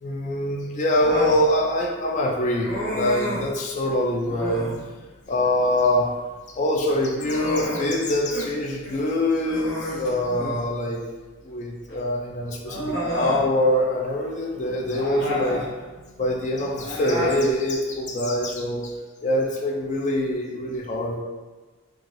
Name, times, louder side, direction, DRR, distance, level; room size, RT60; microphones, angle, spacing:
voice 1, 0.0-4.7 5.3-6.1 6.5-11.0 11.4-15.6 16.2-21.2, left 1 dB, 35° left, 0 dB, 0.3 m, -24 dB
Human voice, 0.9-1.4 2.6-3.5 4.2-4.8 6.7-8.5 8.8-9.0 9.4-10.7 11.9-12.0 12.6-13.5 14.9-15.7 16.7-17.4, left 1 dB, 60° left, 0.7 m, -30 dB
3.1 x 2.3 x 2.6 m, 1.3 s
head